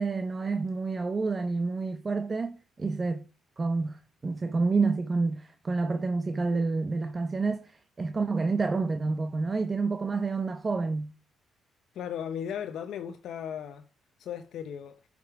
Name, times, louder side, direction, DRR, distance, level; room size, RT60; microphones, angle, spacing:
voice 1, 0.0-3.2 3.6-11.1, right 3 dB, 30° right, 0.8 m, -29 dB
voice 2, 11.9-13.8 14.2-15.0, left 8 dB, 75° left, 0.7 m, -36 dB
9.8 x 5.2 x 4.7 m
cardioid pair, 90°, 0 cm